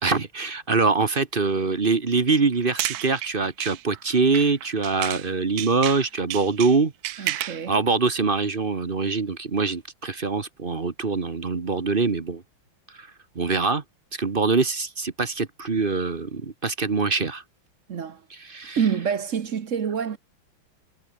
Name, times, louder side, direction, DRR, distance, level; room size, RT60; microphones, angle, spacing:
voice 1, 0.0-12.4 13.0-13.1 13.3-13.8 14.1-17.4 18.5-18.8, right 4 dB, 30° right, 1.3 m, -24 dB
sound 1, 2.5-5.3 5.6-7.7, right 14 dB, 75° right, 0.8 m, -32 dB
voice 2, 7.2-7.8 17.9-18.2 18.8-20.2, right 7 dB, 45° right, 1.1 m, -27 dB
omnidirectional pair, 2.2 m